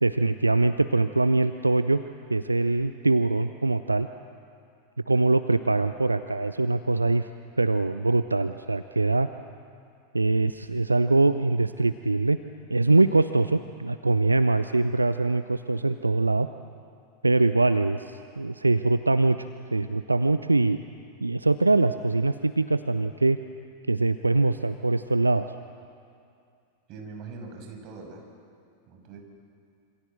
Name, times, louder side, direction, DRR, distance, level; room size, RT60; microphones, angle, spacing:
voice 1, 0.0-2.0 2.3-4.1 5.1-7.3 7.6-9.3 10.1-12.4 12.7-16.5 17.2-19.4 19.7-20.8 21.2-23.4 23.9-25.4, right 2 dB, 80° right, 11 dB, 0.7 m, -23 dB
voice 2, 26.9-28.2 28.9-29.2, right 4 dB, 40° right, 3 dB, 6.5 m, -42 dB
27.0 x 26.0 x 7.9 m, 2.4 s
figure-of-eight pair, 90°, 0 cm